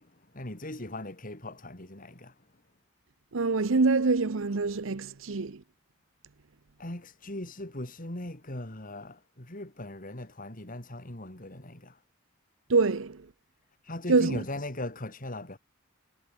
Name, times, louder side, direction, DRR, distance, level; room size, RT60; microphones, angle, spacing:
voice 1, 0.0-2.5 6.8-12.0 13.8-15.6, left 1 dB, 45° left, 3.8 m, -39 dB
voice 2, 3.3-5.6 12.7-13.3 14.1-14.4, right 3 dB, 85° right, 0.9 m, -25 dB
head